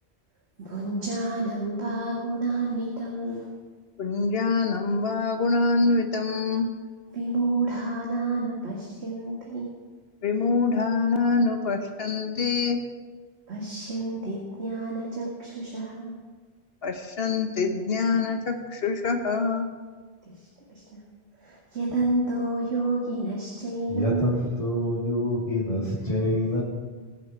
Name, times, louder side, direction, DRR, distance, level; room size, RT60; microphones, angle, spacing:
voice 1, 0.6-3.5 7.1-9.7 13.5-16.2 20.2-21.0 21.4-24.4, right 2 dB, 80° right, -4 dB, 2.2 m, -29 dB
voice 2, 4.0-6.7 10.2-12.8 16.8-19.7, left 4 dB, 65° left, 5 dB, 1.3 m, -25 dB
voice 3, 23.9-26.6, left 1 dB, 35° left, -10 dB, 3.4 m, -26 dB
21.0 x 7.4 x 4.6 m, 1.4 s
omnidirectional pair, 1.1 m